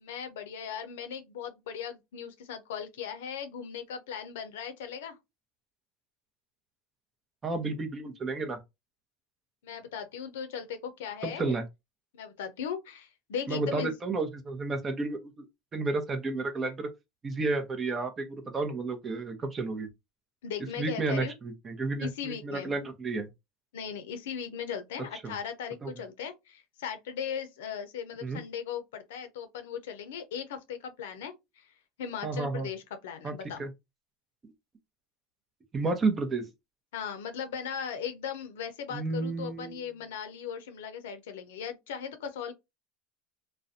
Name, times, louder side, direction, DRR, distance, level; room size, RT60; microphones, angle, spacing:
voice 1, 0.0-5.2 9.6-11.5 12.1-13.9 20.4-21.3 22.0-22.8 23.7-33.6 36.9-42.5, left 7 dB, 80° left, 0.6 m, -38 dB
voice 2, 7.4-8.6 11.2-11.6 13.5-15.5 15.7-16.9 17.2-19.9 20.8-23.3 25.2-25.3 25.8-25.9 28.2-28.4 32.2-32.7 33.2-33.3 33.6-33.7 35.7-36.5 38.9-39.8, right 3 dB, 30° right, 0.7 m, -31 dB
2.4 x 2.1 x 2.5 m
hypercardioid pair, 95°, 0 cm